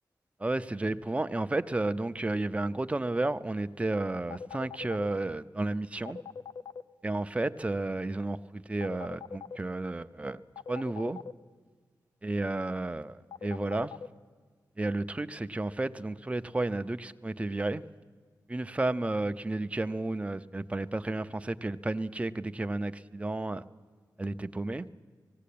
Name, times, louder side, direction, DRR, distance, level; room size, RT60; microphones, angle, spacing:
voice 1, 0.4-6.2 7.0-10.4 10.7-11.2 12.2-14.0 14.8-17.9 18.5-23.6 24.2-24.9, right 2 dB, 20° right, 10 dB, 0.5 m, -32 dB
sound 1, 4.3-5.1 6.1-6.8 8.8-9.6 10.6-11.3 13.3-14.1, left 6 dB, 85° left, 0.5 m, -41 dB
18.5 x 16.5 x 8.5 m, 1.5 s
wide cardioid pair, 125°, 7 cm